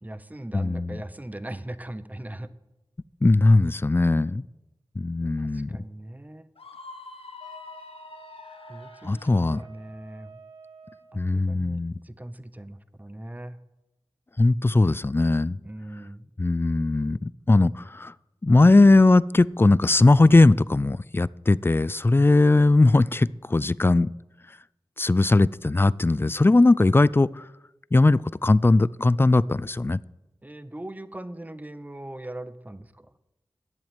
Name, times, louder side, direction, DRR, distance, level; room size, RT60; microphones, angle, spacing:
voice 1, 0.0-2.5 5.2-6.5 8.7-10.4 11.1-13.6 15.6-16.3 30.4-33.1, right 1 dB, 15° right, 14 dB, 0.8 m, -40 dB
voice 2, 0.5-1.0 3.2-4.4 5.0-5.8 9.0-9.6 11.1-12.0 14.4-15.6 16.4-18.1 18.4-24.1 25.0-27.4 27.9-30.0, left 2 dB, 25° left, 21 dB, 0.3 m, -19 dB
Screaming, 6.6-9.5, left 3 dB, 85° left, 1.2 m, -45 dB
Wind instrument woodwind instrument, 7.4-11.3, right 4 dB, 60° right, 2.8 m, -50 dB
10.5 x 7.8 x 9.3 m, 0.97 s
wide cardioid pair, 50°, 10 cm